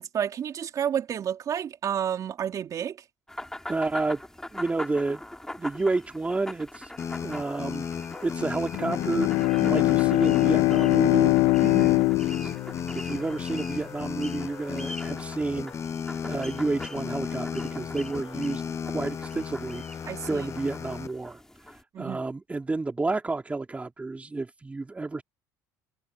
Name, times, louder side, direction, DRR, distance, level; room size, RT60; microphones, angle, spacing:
voice 1, 0.0-3.1 9.6-9.9 11.6-12.1 20.1-20.5 21.9-22.2, right 9 dB, 45° right, 3.1 m, -31 dB
sound 1, 3.3-21.8, left 1 dB, 5° left, 3.9 m, -43 dB
voice 2, 3.7-4.2 4.5-5.2 5.6-6.9 7.2-7.9 8.2-9.3 9.6-11.4 12.4-12.5 12.9-15.7 16.2-25.2, right 3 dB, 15° right, 3.2 m, -30 dB
sound 2, 7.0-21.1, left 7 dB, 40° left, 6.3 m, -35 dB
Bowed string instrument, 8.7-13.5, left 20 dB, 75° left, 0.5 m, -23 dB
supercardioid pair, 85°, 8 cm